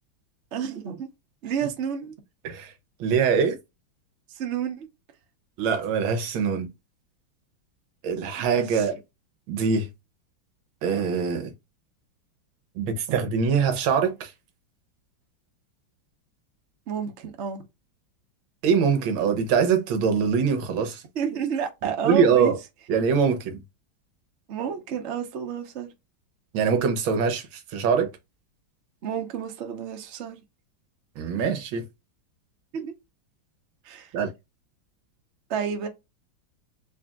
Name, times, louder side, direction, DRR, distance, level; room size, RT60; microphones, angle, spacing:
voice 1, 0.5-1.1 1.4-2.1 4.3-4.9 8.4-8.9 16.9-17.6 21.2-22.5 24.5-25.9 29.0-30.4 32.7-32.9 33.8-34.1 35.5-35.9, right 8 dB, 55° right, 0.8 m, -30 dB
voice 2, 3.0-3.6 5.6-6.7 8.0-9.0 9.5-9.9 10.8-11.5 12.7-14.3 18.6-21.0 22.0-22.6 22.9-23.6 26.5-28.1 31.2-31.9 34.1-34.3, right 6 dB, 80° right, 1.6 m, -23 dB
5.0 x 2.7 x 2.3 m
omnidirectional pair, 2.2 m